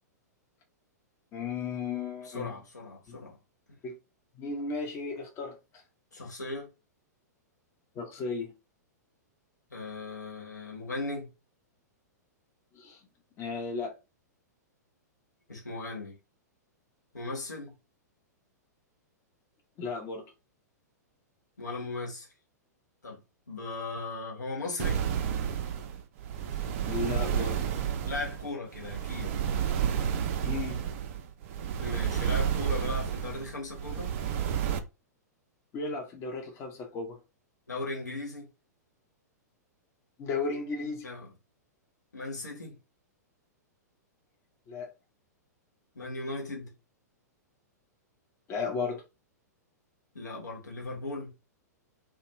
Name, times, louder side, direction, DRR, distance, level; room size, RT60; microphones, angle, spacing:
voice 1, 1.3-2.5 3.1-3.2 3.8-4.0 4.4-5.8 7.9-8.5 12.7-13.0 13.4-14.0 19.8-20.2 26.8-27.6 30.4-30.8 35.7-37.2 40.2-41.0 44.7-44.9 48.5-49.0, left 4 dB, 30° left, 0.7 m, -35 dB
voice 2, 2.2-3.4 6.1-6.7 9.7-11.3 15.5-16.2 17.1-17.7 21.6-22.3 23.0-23.2 23.5-25.0 28.0-29.3 31.8-34.1 37.7-38.5 41.0-41.3 42.1-42.8 45.9-46.7 50.1-51.3, left 3 dB, 80° left, 1.1 m, -37 dB
sound 1, 24.8-34.8, right 8 dB, 45° right, 0.4 m, -31 dB
2.3 x 2.1 x 3.0 m
figure-of-eight pair, 105°, 9 cm